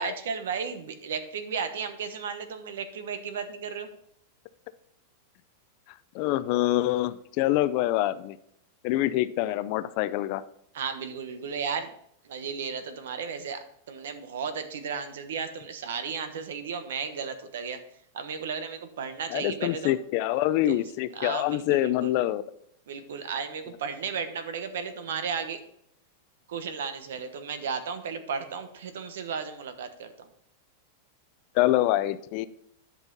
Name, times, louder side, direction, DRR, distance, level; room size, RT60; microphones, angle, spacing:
voice 1, 0.0-3.9 10.7-11.9 12.3-17.8 18.1-19.9 20.7-20.8 21.2-22.1 22.9-25.6 26.5-30.3, right 6 dB, 80° right, 9 dB, 1.2 m, -34 dB
voice 2, 6.1-8.4 8.8-10.4 19.3-22.5 31.5-32.5, left 14 dB, 45° left, 15 dB, 0.5 m, -25 dB
10.5 x 5.5 x 4.1 m, 0.72 s
supercardioid pair, 155°, 0 cm